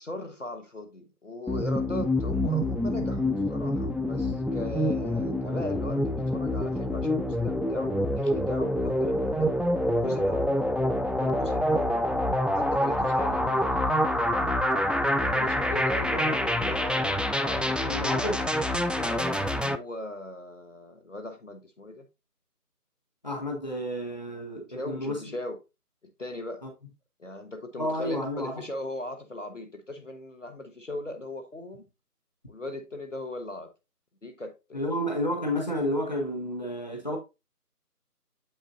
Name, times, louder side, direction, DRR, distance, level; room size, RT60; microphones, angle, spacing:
voice 1, 0.0-9.5 10.0-10.5 11.1-12.0 12.5-14.4 15.1-17.8 19.0-22.1 24.7-25.6 26.2-26.7 27.2-31.9 32.5-33.7 34.2-35.0, left 1 dB, 50° left, 1.2 m, -38 dB
sound 1, 1.5-19.8, left 1 dB, ahead, 0.3 m, -26 dB
voice 2, 17.9-18.5 23.2-25.2 26.6-26.7 27.8-28.6 34.7-37.2, equal, 25° left, 1.3 m, -30 dB
7.9 x 6.2 x 2.6 m
figure-of-eight pair, 170°, 48 cm